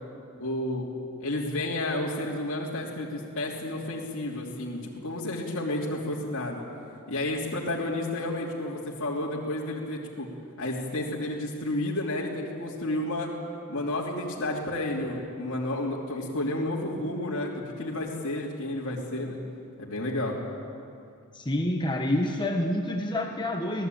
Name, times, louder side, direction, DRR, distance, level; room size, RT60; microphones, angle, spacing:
voice 1, 0.4-0.9 1.2-6.6 7.1-10.3 10.6-13.3 13.7-19.4 19.8-20.4, left 1 dB, 60° left, -5 dB, 3.0 m, -31 dB
voice 2, 21.3-23.9, left 1 dB, 20° left, 2 dB, 1.5 m, -27 dB
27.0 x 18.0 x 9.3 m, 2.5 s
head